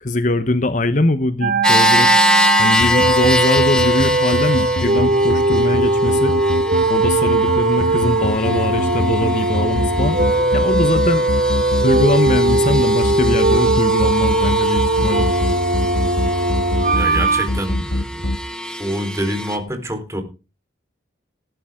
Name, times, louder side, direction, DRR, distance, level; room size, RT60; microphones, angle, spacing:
voice 1, 0.0-2.1 2.6-6.3 6.9-11.2 11.8-15.3, left 2 dB, 40° left, 0.9 m, -21 dB
sound 1, 1.4-17.4, right 2 dB, 50° right, 1.7 m, -19 dB
sound 2, 1.6-19.6, left 1 dB, 5° left, 1.6 m, -24 dB
sound 3, 2.8-18.4, left 1 dB, 75° left, 1.8 m, -23 dB
voice 2, 17.0-18.3 18.8-20.2, right 1 dB, 15° right, 4.0 m, -26 dB
18.0 x 11.5 x 3.7 m
head